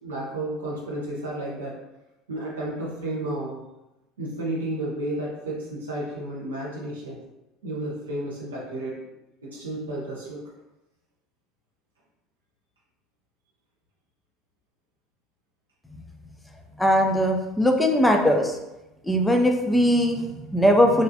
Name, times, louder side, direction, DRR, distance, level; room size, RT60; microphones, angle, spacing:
voice 1, 0.0-1.8 2.3-3.6 4.2-7.2 7.6-9.0 9.4-10.4, right 1 dB, 85° right, -5 dB, 0.7 m, -32 dB
voice 2, 16.8-18.5 19.1-21.0, equal, 5° left, 3 dB, 0.5 m, -20 dB
3.1 x 2.4 x 2.6 m, 0.96 s
hypercardioid pair, 75°, 0 cm